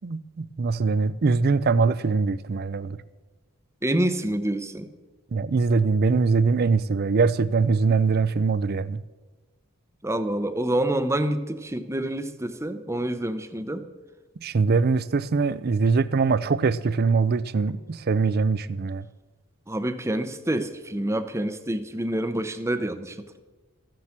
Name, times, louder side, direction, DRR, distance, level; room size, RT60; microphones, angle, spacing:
voice 1, 0.0-3.0 5.3-9.0 14.4-19.0, right 4 dB, 45° right, 0.4 m, -22 dB
voice 2, 3.8-4.9 10.0-13.8 19.7-23.4, right 1 dB, 15° right, 0.7 m, -27 dB
14.5 x 7.6 x 7.3 m
head